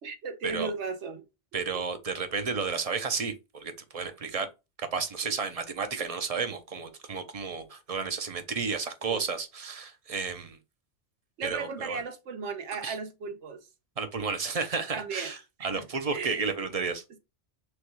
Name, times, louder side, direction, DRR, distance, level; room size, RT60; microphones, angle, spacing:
voice 1, 0.0-1.2 1.7-1.8 9.1-9.2 11.4-13.7 14.9-15.3 15.6-15.9 16.1-16.5, right 5 dB, 75° right, 1.2 m, -36 dB
voice 2, 1.5-4.5 4.9-10.6 11.4-12.0 12.8-13.0 14.0-17.0, right 5 dB, 40° right, 0.6 m, -32 dB
6.2 x 2.3 x 3.1 m
omnidirectional pair, 1.2 m